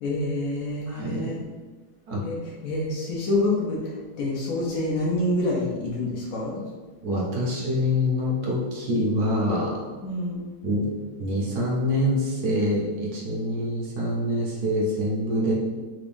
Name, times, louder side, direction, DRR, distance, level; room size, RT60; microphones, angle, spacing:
voice 1, 0.0-1.4 2.2-2.4 2.6-6.6 10.0-10.4, left 2 dB, 85° left, -3 dB, 0.7 m, -27 dB
voice 2, 0.9-1.3 2.1-2.3 7.0-9.8 10.6-10.9 11.2-15.5, left 1 dB, 65° right, -4 dB, 1.0 m, -25 dB
3.5 x 3.5 x 2.5 m, 1.4 s
omnidirectional pair, 2.3 m